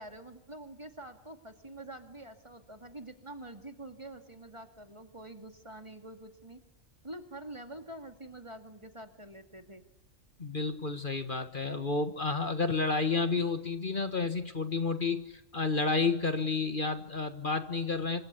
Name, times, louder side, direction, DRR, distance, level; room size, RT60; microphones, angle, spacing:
voice 1, 0.0-6.6 7.0-9.8, right 1 dB, 25° right, 7 dB, 2.4 m, -46 dB
voice 2, 10.4-18.2, left 4 dB, 40° left, 9 dB, 1.8 m, -30 dB
27.0 x 25.5 x 8.3 m, 0.85 s
omnidirectional pair, 1.3 m